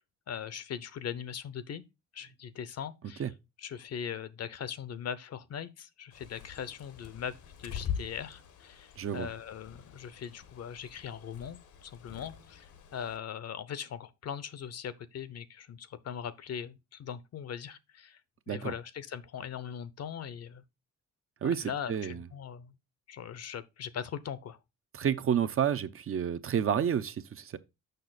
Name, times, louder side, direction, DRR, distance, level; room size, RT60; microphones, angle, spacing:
voice 1, 0.3-1.8 2.1-3.3 3.6-18.2 18.5-20.6 21.4-22.7 23.1-24.6, left 8 dB, 55° left, 0.8 m, -40 dB
Bird, 6.1-13.2, left 8 dB, 80° left, 1.3 m, -44 dB
voice 2, 9.0-9.3 18.5-18.7 21.4-22.2 24.9-27.6, right 8 dB, 45° right, 0.7 m, -30 dB
6.7 x 5.8 x 4.0 m
cardioid pair, 90°, 30 cm